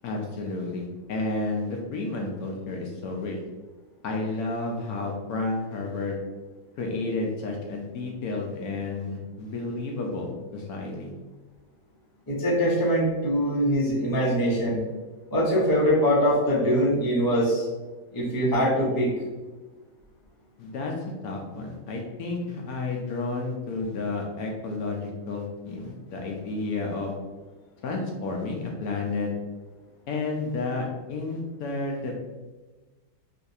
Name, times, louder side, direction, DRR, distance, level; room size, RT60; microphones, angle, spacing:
voice 1, 0.0-3.4 4.0-6.2 6.8-11.1 20.6-20.9 21.2-27.2 27.8-29.3 30.1-32.2, left 3 dB, 70° left, 0 dB, 1.0 m, -31 dB
voice 2, 12.3-14.8 15.3-17.7 18.1-19.1, equal, 20° left, -6 dB, 0.6 m, -23 dB
3.9 x 2.6 x 2.6 m, 1.2 s
omnidirectional pair, 1.7 m